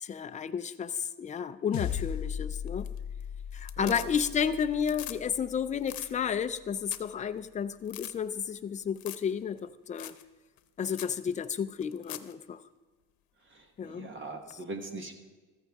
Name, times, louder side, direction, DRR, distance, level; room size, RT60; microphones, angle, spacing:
voice 1, 0.0-2.9 3.5-10.1 10.8-12.6 13.8-14.4, left 7 dB, 20° left, 10 dB, 0.4 m, -32 dB
sound 1, 1.7-6.3, left 8 dB, 55° left, 0.7 m, -38 dB
sound 2, 2.7-3.2 3.5-4.4 4.7-5.2 5.5-5.6 5.8-6.1 6.5-6.6 6.8-7.1 7.4-7.5 7.9-8.1 9.0-9.3 9.6-9.7 10.0-10.2 10.6-10.7 10.9-11.2 11.8-12.3 14.5-14.6, left 14 dB, 90° left, 0.8 m, -42 dB
voice 2, 3.8-4.1 13.5-15.1, right 3 dB, 35° right, 5 dB, 1.2 m, -41 dB
14.5 x 14.0 x 3.5 m, 1.3 s
cardioid pair, 170°, 34 cm